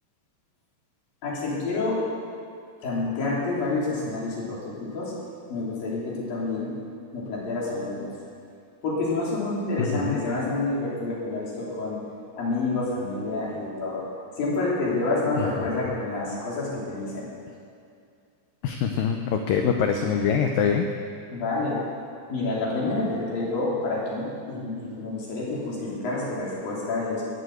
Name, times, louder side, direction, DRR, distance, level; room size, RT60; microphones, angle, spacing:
voice 1, 1.2-2.0 2.8-5.1 5.5-6.7 7.1-8.1 8.8-12.0 12.4-14.0 14.4-17.3 21.3-21.8 22.3-27.2, left 2 dB, 55° left, -6 dB, 4.9 m, -28 dB
voice 2, 9.8-10.2 15.4-15.7 18.6-20.9, left 7 dB, 85° left, 4 dB, 1.9 m, -24 dB
19.0 x 7.6 x 7.9 m, 2.4 s
omnidirectional pair, 5.0 m